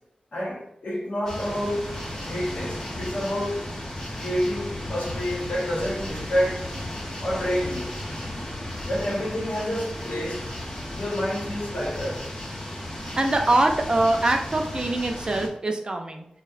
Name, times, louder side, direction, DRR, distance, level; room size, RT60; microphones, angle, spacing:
voice 1, 0.3-3.7 4.1-6.7 7.2-8.0 8.9-10.6 10.9-12.3, equal, 75° left, 0.8 m, -29 dB
sound 1, 1.3-15.5, left 1 dB, 25° left, 0.7 m, -34 dB
voice 2, 13.2-16.3, right 2 dB, 35° right, 0.3 m, -23 dB
2.7 x 2.0 x 2.4 m
wide cardioid pair, 95°, 3 cm